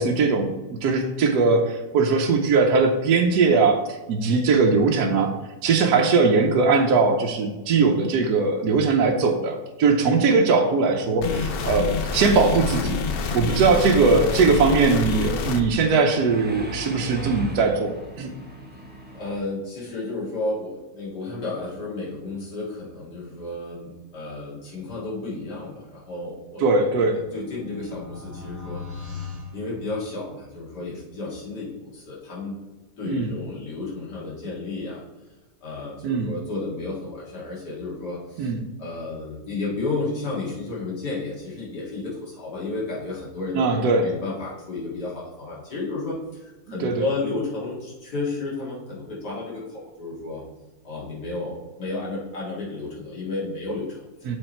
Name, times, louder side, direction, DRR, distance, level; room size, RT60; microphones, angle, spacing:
voice 1, 0.0-5.3 5.6-13.0 13.3-18.3 26.6-27.2 33.0-33.3 36.0-36.3 38.4-38.6 43.5-44.1 46.7-47.0 54.3-54.4, right 4 dB, 75° right, 2 dB, 1.2 m, -20 dB
sound 1, 11.2-15.6, left 5 dB, 65° left, 0.5 m, -27 dB
Mechanisms, 13.5-19.4, right 2 dB, 10° right, 0.7 m, -39 dB
voice 2, 19.1-26.6 27.0-27.1 27.3-32.6 33.0-35.0 35.6-38.5 38.8-50.4 50.8-54.3, left 3 dB, 90° left, -6 dB, 2.6 m, -32 dB
sound 2, 26.5-30.5, left 5 dB, 55° right, 2.4 m, -39 dB
7.1 x 4.9 x 4.3 m, 1.1 s
omnidirectional pair, 1.7 m